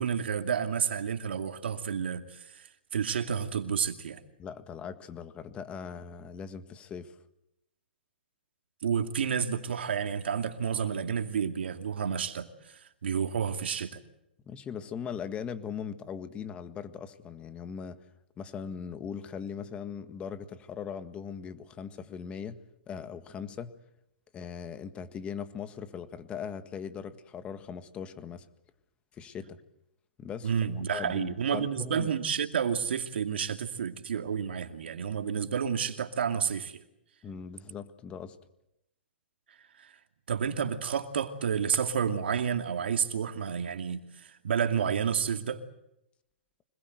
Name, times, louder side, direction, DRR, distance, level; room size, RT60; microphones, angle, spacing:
voice 1, 0.0-2.7 2.9-4.2 8.8-14.0 30.4-36.8 39.8-40.0 40.3-45.6, right 7 dB, 75° right, 2.5 m, -30 dB
voice 2, 4.4-7.2 14.5-18.0 18.4-22.6 22.9-23.7 24.3-28.4 29.1-29.6 30.2-32.1 37.2-38.4, left 7 dB, 20° left, 1.7 m, -40 dB
25.5 x 21.0 x 7.9 m
hypercardioid pair, 140°, 6 cm